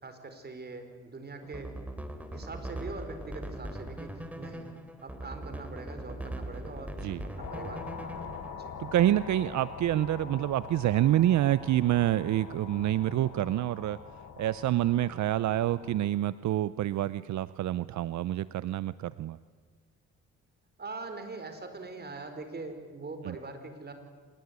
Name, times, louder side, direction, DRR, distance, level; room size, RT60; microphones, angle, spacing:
voice 1, 0.0-1.7 2.3-4.7 5.0-6.9 7.2-8.7 20.8-23.9, right 3 dB, 35° right, 8 dB, 4.9 m, -42 dB
sound 1, 1.4-8.5, right 1 dB, 5° right, 3.1 m, -40 dB
sound 2, 7.4-16.1, left 6 dB, 75° left, 4.5 m, -44 dB
voice 2, 8.8-14.0 14.4-19.4 23.2-23.4, right 13 dB, 70° right, 16 dB, 0.7 m, -27 dB
26.5 x 21.0 x 9.6 m, 1.5 s
cardioid pair, 90°, 30 cm